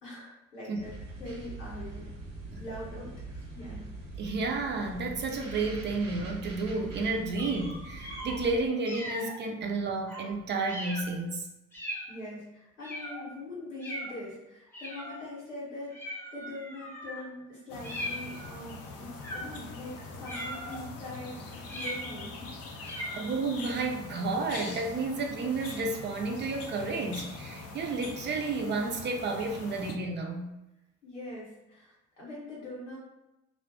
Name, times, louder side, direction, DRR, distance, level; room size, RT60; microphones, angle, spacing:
voice 1, 0.0-2.1 2.6-3.9 12.1-22.5 22.9-23.2 31.0-33.0, left 1 dB, 85° left, -6 dB, 0.8 m, -43 dB
sound 1, 0.8-8.6, right 2 dB, 85° right, 0.5 m, -43 dB
voice 2, 4.2-11.5 23.2-30.5, right 3 dB, 30° right, 2 dB, 0.4 m, -31 dB
sound 2, 7.4-8.4 8.9-9.4 10.1-10.3 10.7-11.1 11.7-12.2 12.8-13.3 13.8-14.2 14.7-15.3 15.9-17.2 17.8-18.5 19.2-19.7 20.3-20.9 21.7-22.3 22.8-23.3, equal, 5° left, 0.8 m, -39 dB
sound 3, 17.7-29.9, left 3 dB, 45° left, 0.5 m, -43 dB
2.4 x 2.0 x 2.8 m, 0.92 s
figure-of-eight pair, 45°, 36 cm